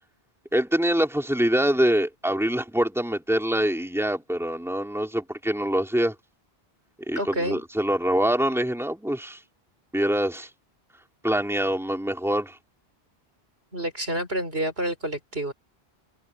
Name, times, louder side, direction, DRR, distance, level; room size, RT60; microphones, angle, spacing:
voice 1, 0.5-6.1 7.1-9.4 9.9-10.5 11.2-12.6, right 1 dB, ahead, 4.0 m, -24 dB
voice 2, 7.2-7.6 13.7-15.5, right 1 dB, 75° right, 6.2 m, -28 dB
omnidirectional pair, 1.0 m